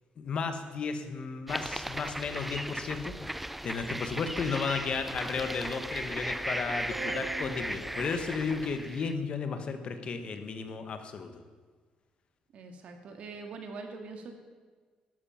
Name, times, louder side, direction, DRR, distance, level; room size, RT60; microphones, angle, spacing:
voice 1, 0.2-11.4, left 5 dB, 45° left, 8 dB, 1.3 m, -34 dB
sound 1, 1.5-9.1, right 1 dB, 5° right, 0.3 m, -37 dB
sound 2, 6.9-9.5, right 5 dB, 85° right, 1.5 m, -44 dB
voice 2, 12.5-14.4, right 4 dB, 60° right, 4 dB, 2.2 m, -43 dB
12.5 x 12.5 x 5.8 m, 1.5 s
cardioid pair, 155°, 2 cm